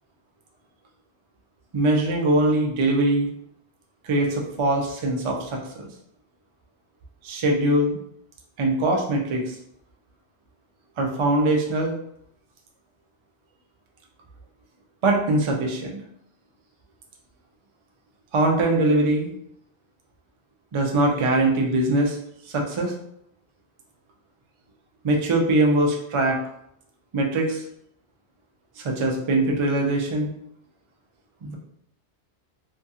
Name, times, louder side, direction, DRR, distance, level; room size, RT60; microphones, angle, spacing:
voice 1, 1.7-3.3 4.0-5.9 7.2-8.0 8.6-9.6 11.0-11.9 15.0-16.0 18.3-19.3 20.7-22.2 22.5-22.9 25.0-26.4 27.1-27.6 28.8-30.3 31.4-31.6, right 2 dB, 50° right, 0 dB, 0.3 m, -22 dB
2.7 x 2.3 x 2.7 m, 0.72 s
omnidirectional pair, 1.2 m